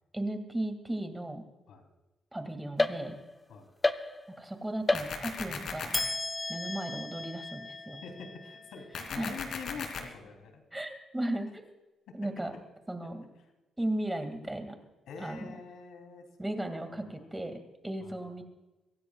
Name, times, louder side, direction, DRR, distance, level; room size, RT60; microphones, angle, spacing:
voice 1, 0.1-1.4 2.3-3.2 4.4-6.0 6.5-8.0 9.1-9.4 10.7-11.7 12.1-12.5 12.9-13.3 13.8-14.8 15.2-15.6 16.4-18.4, right 1 dB, 10° right, 6 dB, 2.2 m, -36 dB
sound 1, 2.8-3.4 3.8-4.5 4.9-5.5 5.9-9.4, left 2 dB, 15° left, 0.6 m, -33 dB
sound 2, 4.9-6.0 8.9-10.0, left 6 dB, 65° left, 2.8 m, -37 dB
voice 2, 8.0-10.6 12.1-12.2 13.0-13.1 15.1-17.3 18.0-18.3, left 5 dB, 85° left, 5 dB, 3.1 m, -46 dB
24.0 x 16.5 x 2.4 m, 1.0 s
cardioid pair, 135°, 0 cm